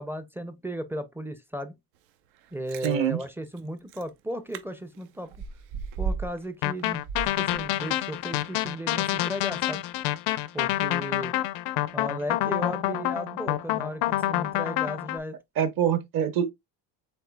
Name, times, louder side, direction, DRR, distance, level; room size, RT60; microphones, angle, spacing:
voice 1, 0.0-1.8 2.5-5.3 6.0-7.1 7.4-9.8 10.5-11.3 11.9-15.4, equal, 5° right, 0.4 m, -35 dB
Chewing mastication, 2.4-2.9 3.6-3.7 3.9-4.1 4.5-4.6 4.9-6.5 6.8-8.0 8.4-8.5, right 5 dB, 90° right, 0.8 m, -35 dB
voice 2, 2.8-3.2 15.6-16.5, right 9 dB, 50° right, 0.8 m, -25 dB
sound 1, 6.6-15.2, left 15 dB, 80° left, 0.6 m, -27 dB
7.7 x 2.8 x 2.2 m
cardioid pair, 130°, 43 cm